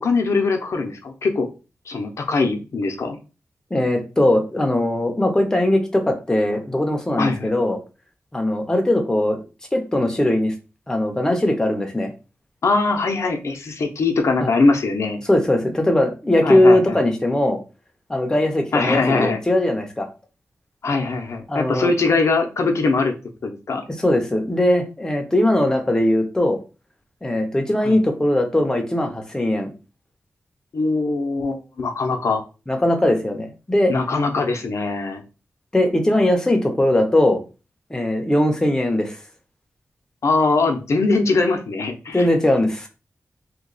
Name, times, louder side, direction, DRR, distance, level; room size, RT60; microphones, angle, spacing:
voice 1, 0.0-1.5 1.9-3.2 7.2-7.5 12.6-15.2 16.4-17.0 18.7-19.4 20.8-23.1 23.4-23.8 27.8-28.0 30.7-32.4 33.9-35.2 40.2-42.3, left 3 dB, 70° left, 5 dB, 0.6 m, -21 dB
voice 2, 3.7-7.8 8.3-9.4 9.7-10.5 10.9-12.1 14.4-14.5 15.3-17.6 18.1-20.1 21.5-21.9 24.0-26.6 27.2-29.7 32.7-33.9 35.7-37.4 37.9-39.2 42.1-42.9, left 1 dB, 10° left, 3 dB, 0.6 m, -20 dB
2.9 x 2.2 x 3.8 m, 0.32 s
wide cardioid pair, 155°, 5 cm